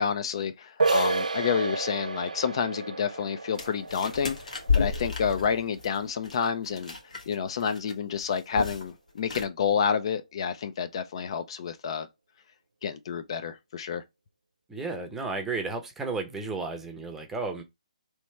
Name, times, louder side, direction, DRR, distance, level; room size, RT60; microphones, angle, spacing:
voice 1, 0.0-6.9 7.3-12.1 12.8-14.0, left 6 dB, 45° left, 0.4 m, -29 dB
sound 1, 0.8-6.3, right 3 dB, 80° right, 0.5 m, -31 dB
sound 2, 3.5-7.3 7.6-7.9 8.2-8.9 9.2-9.4, left 5 dB, 75° left, 1.4 m, -31 dB
voice 2, 14.7-17.6, right 3 dB, 5° right, 0.7 m, -33 dB
3.2 x 3.1 x 4.3 m
figure-of-eight pair, 145°, 4 cm